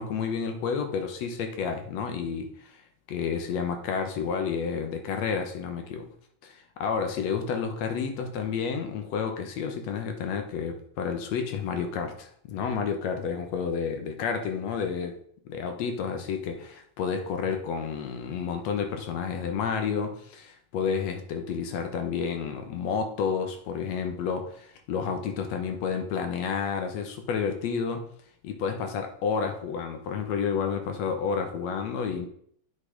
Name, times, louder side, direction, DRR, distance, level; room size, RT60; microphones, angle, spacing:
voice 1, 0.0-2.5 3.1-6.1 6.4-15.2 15.5-28.0 28.4-32.3, left 6 dB, 65° left, 6 dB, 2.1 m, -30 dB
8.3 x 5.4 x 5.1 m, 0.63 s
omnidirectional pair, 3.4 m